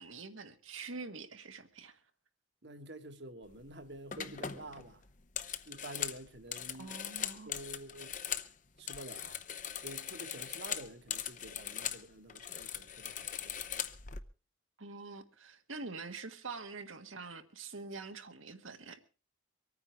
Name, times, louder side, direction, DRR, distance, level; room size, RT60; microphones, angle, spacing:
voice 1, 0.0-2.0 6.8-7.5 14.8-19.0, right 4 dB, 80° right, 1.7 m, -45 dB
voice 2, 2.6-5.0 5.6-7.0 7.4-8.2 8.8-9.4 9.8-13.6, right 1 dB, 55° right, 1.7 m, -49 dB
sound 1, 3.5-3.7 4.1-8.5 8.8-12.0 12.3-14.2, left 9 dB, 40° left, 0.8 m, -40 dB
24.5 x 9.6 x 4.6 m
head